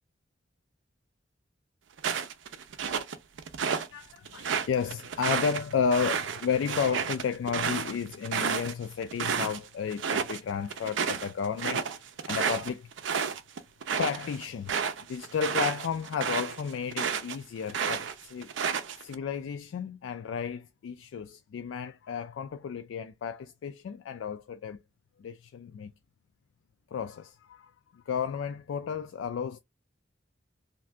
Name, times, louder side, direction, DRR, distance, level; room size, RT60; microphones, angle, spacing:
sound 1, 2.0-3.9 4.3-9.6 9.9-10.4 10.7-17.4 17.7-19.1, right 6 dB, 75° right, 0.5 m, -31 dB
voice 1, 3.9-11.9 12.3-12.9 14.0-14.7 15.0-18.5 19.0-24.8 25.2-25.9 26.9-29.6, left 7 dB, 90° left, 0.3 m, -32 dB
2.6 x 2.5 x 3.2 m
head